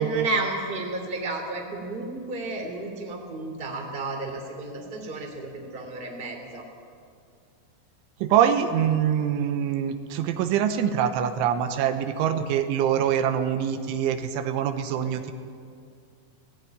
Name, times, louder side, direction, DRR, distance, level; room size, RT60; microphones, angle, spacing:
voice 1, 0.0-6.6, right 3 dB, 15° right, 1 dB, 2.3 m, -32 dB
voice 2, 8.2-15.3, right 9 dB, 85° right, 8 dB, 3.4 m, -24 dB
18.0 x 17.5 x 9.4 m, 2.3 s
omnidirectional pair, 5.4 m